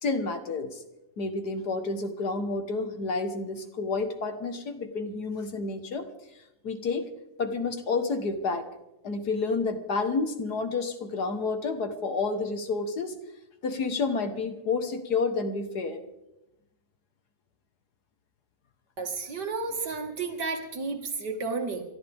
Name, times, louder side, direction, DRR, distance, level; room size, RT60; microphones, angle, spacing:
voice 1, 0.0-0.8 1.2-6.1 6.6-7.1 7.4-8.7 9.0-13.2 13.6-16.0, left 4 dB, 60° left, 7 dB, 1.9 m, -30 dB
voice 2, 19.0-21.8, right 4 dB, 65° right, 3 dB, 2.5 m, -32 dB
27.5 x 12.5 x 3.5 m, 0.94 s
omnidirectional pair, 1.9 m